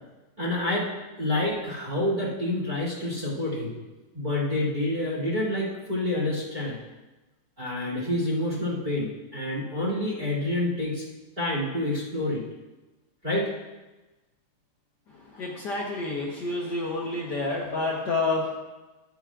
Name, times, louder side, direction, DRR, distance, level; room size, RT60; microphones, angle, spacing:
voice 1, 0.4-0.9 1.2-3.7 4.1-6.8 7.6-11.0 11.4-12.4 13.2-13.5 15.3-15.5, left 1 dB, 15° right, -4 dB, 2.3 m, -28 dB
voice 2, 15.4-18.6, left 2 dB, 85° left, -3 dB, 0.9 m, -29 dB
12.5 x 9.1 x 2.5 m, 1.1 s
omnidirectional pair, 3.5 m